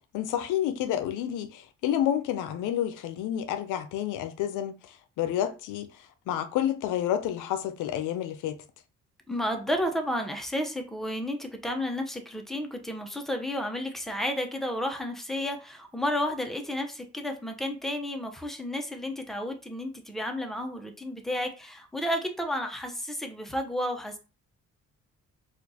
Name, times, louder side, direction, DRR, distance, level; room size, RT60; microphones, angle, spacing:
voice 1, 0.1-8.6, left 11 dB, 90° left, 0.5 m, -30 dB
voice 2, 9.3-24.2, left 1 dB, ahead, 0.7 m, -32 dB
4.3 x 2.4 x 2.8 m
cardioid pair, 90°, 30 cm